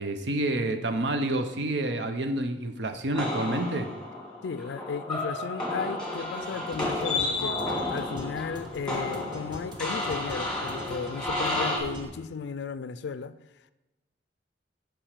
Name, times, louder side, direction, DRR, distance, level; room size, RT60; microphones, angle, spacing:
voice 1, 0.0-3.9, right 1 dB, 70° right, 0.7 m, -28 dB
sound 1, 3.1-11.8, left 2 dB, 5° left, 1.7 m, -32 dB
voice 2, 4.4-7.6 7.9-13.4, left 5 dB, 70° left, 0.3 m, -35 dB
sound 2, 5.9-12.0, equal, 25° right, 0.8 m, -44 dB
6.0 x 5.0 x 6.6 m
head